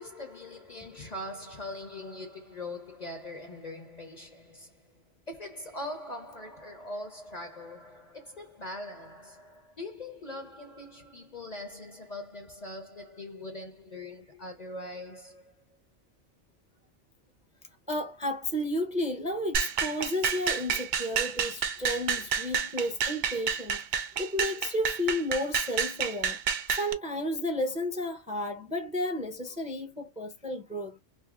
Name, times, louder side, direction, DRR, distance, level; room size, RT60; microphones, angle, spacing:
voice 1, 0.0-5.0 5.3-15.5, left 1 dB, 40° left, 0.8 m, -42 dB
voice 2, 17.9-26.4 26.7-31.0, left 1 dB, 5° right, 0.7 m, -32 dB
sound 1, 19.5-26.9, right 7 dB, 55° right, 0.6 m, -30 dB
2.6 x 2.6 x 3.7 m
omnidirectional pair, 1.2 m